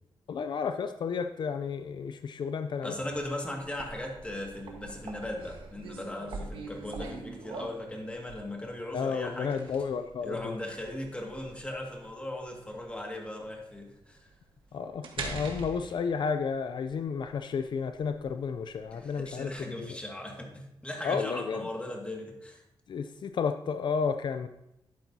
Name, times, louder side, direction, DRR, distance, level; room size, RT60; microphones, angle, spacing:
voice 1, 0.3-3.0 8.9-10.5 14.7-20.0 21.0-21.6 22.9-24.5, left 6 dB, 60° left, 8 dB, 0.4 m, -32 dB
voice 2, 2.8-9.6 10.2-14.3 18.9-22.6, left 1 dB, 15° left, 1 dB, 2.0 m, -38 dB
sound 1, 3.6-19.6, right 3 dB, 80° right, 1.4 m, -44 dB
11.5 x 9.1 x 2.8 m, 0.87 s
cardioid pair, 95°, 9 cm